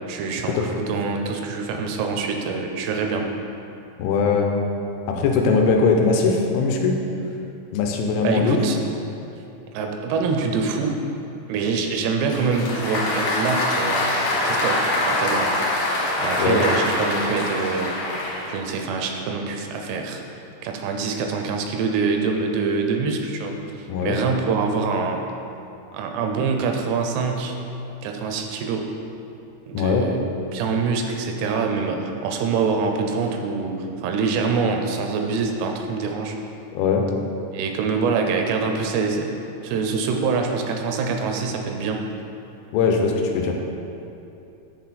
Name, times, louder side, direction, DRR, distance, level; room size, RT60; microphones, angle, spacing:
voice 1, 0.0-3.3 5.1-5.2 8.2-8.8 9.7-11.0 11.5-15.9 16.2-17.9 18.5-20.2 20.6-25.2 25.9-27.6 28.0-28.9 29.7-30.2 30.5-36.4 37.5-42.0, right 4 dB, 80° right, 3 dB, 2.6 m, -25 dB
voice 2, 4.0-4.6 5.1-6.9 7.7-8.6 16.4-16.6 23.9-24.2 29.7-30.0 36.7-37.0 42.7-43.5, left 4 dB, 90° left, 2 dB, 2.8 m, -20 dB
Applause, 12.3-18.6, left 1 dB, 65° left, 2.9 m, -24 dB
10.0 x 4.2 x 4.0 m, 2.8 s
omnidirectional pair, 4.9 m